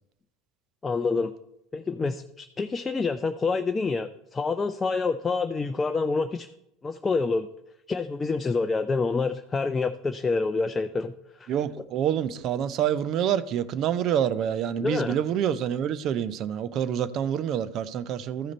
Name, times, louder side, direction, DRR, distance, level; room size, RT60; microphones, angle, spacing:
voice 1, 0.8-1.3 1.7-6.5 6.8-7.5 7.9-11.1 11.4-11.5 14.8-15.2, left 4 dB, 20° left, 0.5 m, -27 dB
voice 2, 11.5-18.5, right 9 dB, 50° right, 0.6 m, -27 dB
13.5 x 5.0 x 4.1 m
hypercardioid pair, 75°, 0 cm